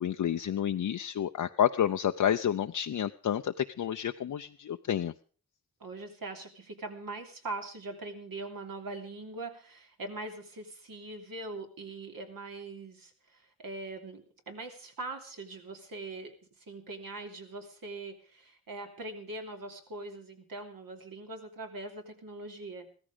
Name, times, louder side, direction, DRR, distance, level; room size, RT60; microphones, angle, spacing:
voice 1, 0.0-5.1, left 9 dB, 55° left, 7 dB, 0.6 m, -29 dB
voice 2, 5.8-16.3 16.6-22.9, right 2 dB, 65° right, 3 dB, 3.1 m, -42 dB
15.5 x 14.0 x 5.1 m, 0.42 s
cardioid pair, 75°, 36 cm